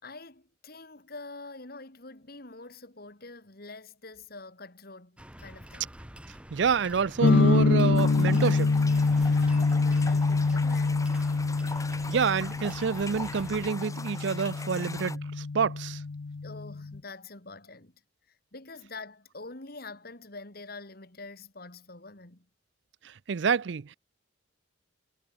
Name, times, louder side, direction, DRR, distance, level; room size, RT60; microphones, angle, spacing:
voice 1, 0.0-6.0 9.2-11.1 16.4-18.0 18.3-22.5, left 3 dB, 50° left, 2.7 m, -46 dB
sound 1, 5.2-13.7, equal, 5° right, 2.2 m, -47 dB
voice 2, 6.5-8.7 12.1-16.0 23.0-24.0, right 6 dB, 65° right, 0.5 m, -28 dB
sound 2, 7.2-17.0, left 3 dB, 65° left, 0.6 m, -26 dB
sound 3, 7.9-15.2, left 3 dB, 15° left, 2.4 m, -42 dB
head